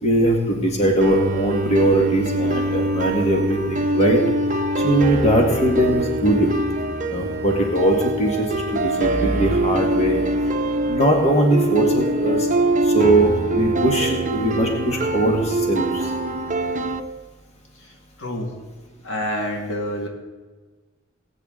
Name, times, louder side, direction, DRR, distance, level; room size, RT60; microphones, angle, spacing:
voice 1, 0.0-4.2 4.8-6.5 7.1-10.2 10.9-12.5 12.8-16.1, right 1 dB, 35° left, 1 dB, 1.8 m, -20 dB
sound 1, 1.0-17.0, right 1 dB, 40° right, 0.7 m, -23 dB
voice 2, 17.8-18.5 19.0-20.1, equal, 65° left, 2 dB, 2.0 m, -28 dB
19.0 x 9.2 x 3.9 m, 1.3 s
head